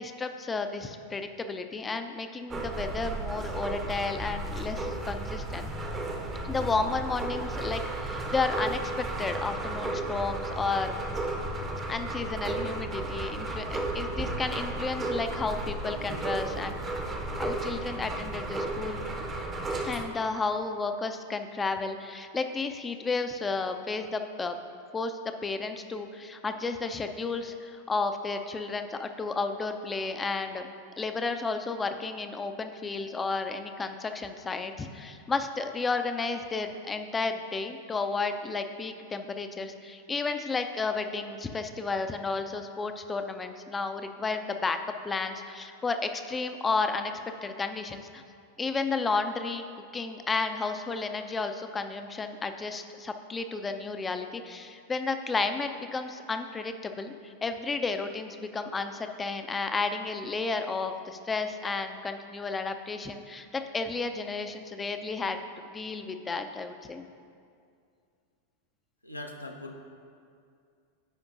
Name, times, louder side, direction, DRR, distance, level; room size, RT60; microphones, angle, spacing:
voice 1, 0.0-5.7 6.4-11.0 11.9-16.8 17.3-19.0 19.8-24.6 24.9-30.7 31.0-47.1 47.4-48.2 48.6-49.7 49.9-65.4 65.7-67.1, left 4 dB, 15° left, 7 dB, 0.5 m, -32 dB
sound 1, 2.5-20.1, right 2 dB, 20° right, 0.7 m, -34 dB
voice 2, 69.0-69.8, left 1 dB, 85° left, 2 dB, 0.7 m, -40 dB
14.0 x 5.1 x 2.5 m, 2.3 s
figure-of-eight pair, 90°, 0 cm